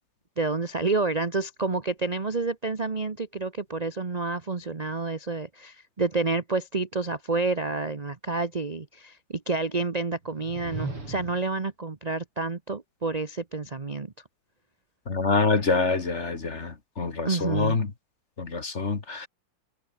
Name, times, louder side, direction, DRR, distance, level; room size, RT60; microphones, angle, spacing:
voice 1, 0.4-14.1 17.2-17.8, right 3 dB, 30° right, 0.7 m, -29 dB
sound 1, 10.2-11.6, right 2 dB, 80° right, 8.6 m, -36 dB
voice 2, 15.1-17.9 18.4-19.3, left 4 dB, 30° left, 2.0 m, -26 dB
omnidirectional pair, 2.4 m